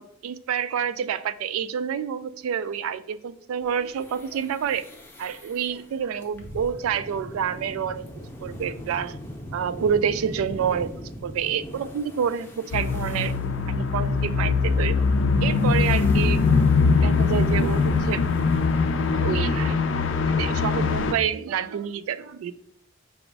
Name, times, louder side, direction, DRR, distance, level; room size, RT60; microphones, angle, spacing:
voice 1, 0.0-4.9 5.2-9.2 9.5-10.9 11.2-13.3 13.7-15.0 15.4-16.4 17.0-18.2 19.1-19.8 20.2-22.5, right 7 dB, 85° right, 14 dB, 0.3 m, -28 dB
sound 1, 3.6-19.7, equal, 10° left, 0.6 m, -42 dB
sound 2, 12.7-21.1, left 4 dB, 60° left, 0.4 m, -22 dB
4.9 x 2.0 x 4.5 m, 0.72 s
head